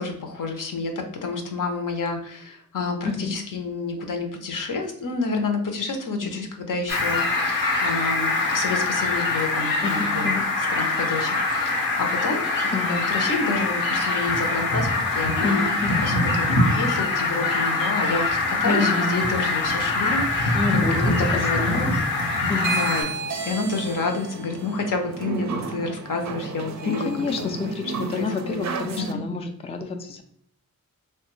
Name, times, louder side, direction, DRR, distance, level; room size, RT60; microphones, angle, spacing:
voice 1, 0.0-10.3 10.7-12.4 12.8-15.7 16.0-21.9 22.7-23.0 23.4-27.1 27.4-27.5 28.1-28.6 29.0-29.2, left 3 dB, 65° left, 4 dB, 0.7 m, -29 dB
Fowl, 6.9-23.0, left 2 dB, 80° left, 1.0 m, -23 dB
voice 2, 9.8-10.5 12.7-13.0 15.4-16.1 18.0-18.1 18.7-19.1 20.5-22.0 22.5-22.8 26.9-30.2, left 4 dB, 20° left, 5 dB, 0.4 m, -28 dB
sound 1, 22.6-29.1, right 5 dB, 50° right, 0.4 m, -32 dB
3.1 x 2.2 x 3.0 m, 0.67 s
cardioid pair, 50°, 35 cm